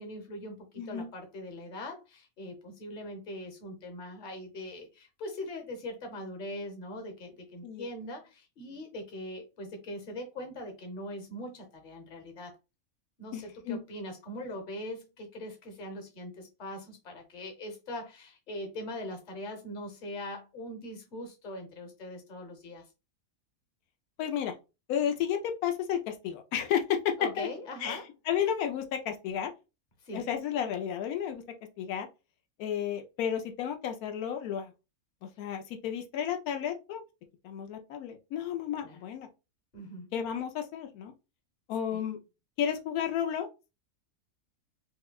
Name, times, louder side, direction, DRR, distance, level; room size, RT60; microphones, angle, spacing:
voice 1, 0.0-12.6 13.2-22.9 27.2-28.1 30.0-30.2 38.8-39.0 39.7-40.1 41.9-42.0, left 1 dB, 40° left, 1.0 m, -41 dB
voice 2, 0.8-1.1 7.6-7.9 13.3-13.8 24.2-24.5 24.9-27.5 27.8-28.0 28.3-29.5 30.1-31.4 31.8-32.1 32.6-34.7 35.2-37.0 37.4-39.3 40.1-41.1 41.7-42.2 42.6-43.5, left 9 dB, 85° left, 1.1 m, -32 dB
5.2 x 2.2 x 2.2 m
omnidirectional pair, 1.5 m